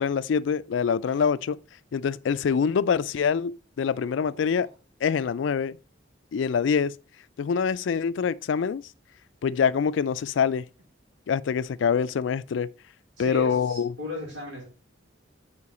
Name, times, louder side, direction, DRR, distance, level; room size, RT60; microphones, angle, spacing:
voice 1, 0.0-1.6 1.9-4.7 5.0-5.8 6.3-6.9 7.4-8.8 9.4-10.6 11.3-12.7 13.2-13.9, left 6 dB, 70° left, 0.3 m, -25 dB
voice 2, 3.9-4.7 13.2-14.6, left 2 dB, 75° right, 3.6 m, -38 dB
8.7 x 4.5 x 4.2 m
head